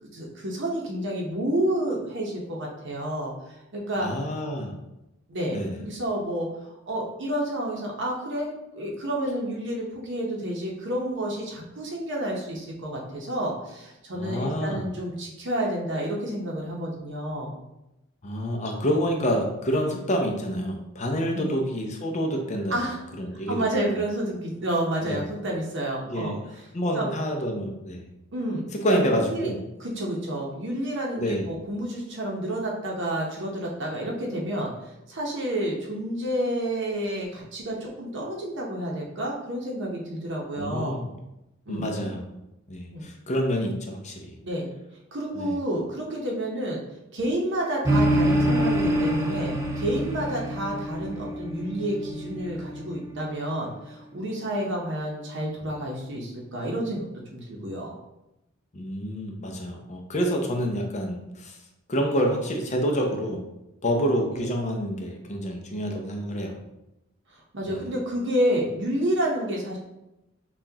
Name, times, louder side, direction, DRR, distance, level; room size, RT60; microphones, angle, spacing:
voice 1, 0.0-4.1 5.3-17.5 21.3-21.6 22.7-23.0 23.5-26.4 27.0-27.1 28.3-28.6 28.9-29.0 29.3-29.5 29.8-41.0 41.7-41.8 42.9-43.1 44.4-44.7 45.1-46.8 47.1-57.9 64.3-64.4 67.5-69.8, right 1 dB, 60° right, -2 dB, 0.8 m, -30 dB
voice 2, 4.0-4.7 5.5-5.8 14.1-14.9 18.2-22.9 23.2-24.0 25.0-25.3 26.1-26.4 26.7-28.1 28.7-29.6 31.2-31.5 40.6-41.1 41.7-42.2 42.7-44.4 45.3-45.6 58.7-61.6 61.9-63.4 63.8-66.6 67.6-67.9, equal, 35° left, 2 dB, 0.6 m, -28 dB
sound 1, 47.8-53.5, right 1 dB, 15° right, 0.4 m, -26 dB
5.7 x 2.4 x 2.8 m, 0.90 s
head